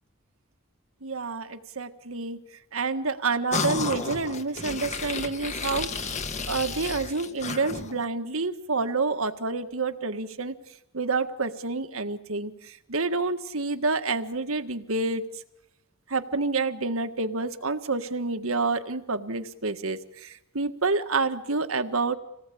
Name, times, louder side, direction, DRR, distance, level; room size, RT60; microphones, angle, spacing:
voice 1, 1.0-2.4 2.7-5.9 6.5-10.5 10.9-12.5 12.9-15.2 16.1-22.2, right 3 dB, 75° right, 8 dB, 1.7 m, -28 dB
sound 1, 3.5-8.0, left 4 dB, 35° left, 1.5 m, -32 dB
27.0 x 19.0 x 8.6 m, 0.89 s
head